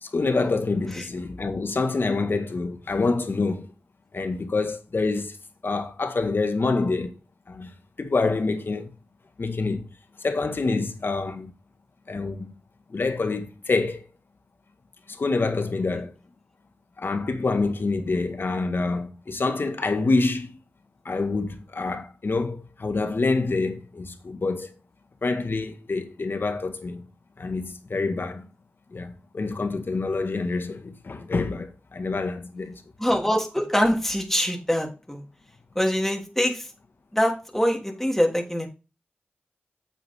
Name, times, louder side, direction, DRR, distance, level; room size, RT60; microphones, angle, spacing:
voice 1, 0.0-3.7 4.1-5.4 5.6-7.2 7.5-8.9 9.4-9.9 10.2-11.5 12.1-12.5 12.9-14.0 15.1-16.1 17.0-20.5 21.0-24.7 25.2-27.1 27.4-28.5 28.9-32.8, left 3 dB, 65° left, 1.8 m, -26 dB
voice 2, 33.0-35.2 35.7-36.7 37.1-38.7, equal, 5° left, 3.3 m, -24 dB
8.9 x 7.6 x 3.7 m
cardioid pair, 40°, 4 cm